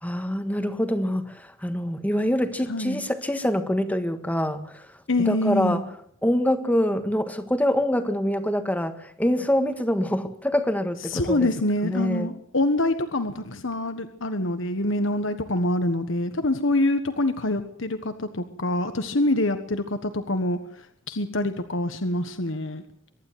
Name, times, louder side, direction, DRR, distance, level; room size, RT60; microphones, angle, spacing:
voice 1, 0.0-4.9 5.2-5.8 6.2-11.5 11.8-12.3, equal, 10° left, 8 dB, 1.6 m, -25 dB
voice 2, 2.7-3.0 5.1-5.8 11.1-20.6 21.1-22.8, left 1 dB, 65° left, 9 dB, 1.4 m, -25 dB
23.5 x 12.0 x 9.3 m, 0.66 s
head